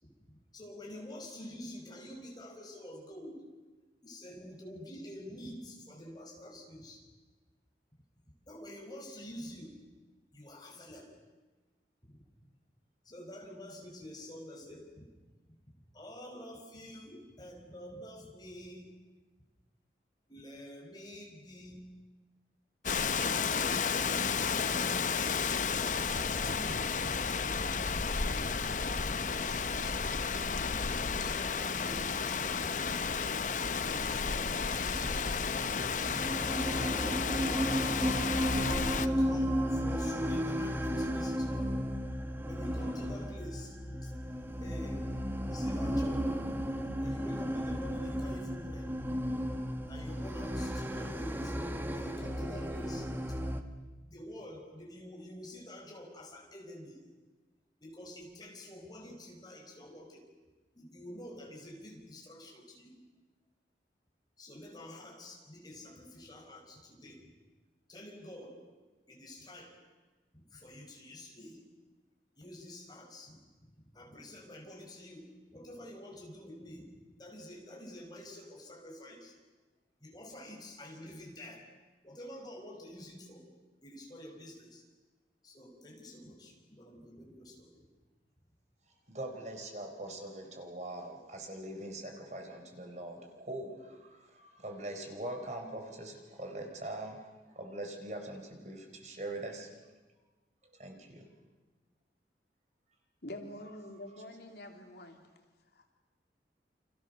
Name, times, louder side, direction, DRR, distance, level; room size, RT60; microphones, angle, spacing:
voice 1, 0.0-3.4 4.0-7.0 8.5-9.8 10.3-11.2 12.0-12.2 13.0-15.0 15.5-18.9 20.3-21.8 23.5-25.0 25.7-27.6 29.1-30.0 31.0-32.8 33.8-35.3 35.9-37.7 38.9-41.8 42.4-44.1 44.6-45.0 45.5-46.4 47.0-48.9 49.9-51.6 51.9-53.8 54.1-57.2 57.8-60.2 60.7-62.9 64.4-67.2 67.9-68.6 69.1-69.7 70.3-71.6 72.4-76.9 77.2-79.4 80.0-81.6 82.0-83.4 83.8-84.8 85.4-87.9, left 1 dB, 25° left, 0 dB, 5.8 m, -48 dB
Rain, 22.8-39.1, left 5 dB, 45° left, 0.8 m, -32 dB
sound 1, 34.9-53.6, equal, 10° right, 1.3 m, -34 dB
voice 2, 89.1-99.9 100.7-101.2, right 1 dB, 40° right, 3 dB, 4.2 m, -42 dB
voice 3, 103.2-105.2 105.7-105.9, left 1 dB, 65° left, 3 dB, 3.2 m, -46 dB
29.5 x 26.5 x 6.8 m, 1.3 s
head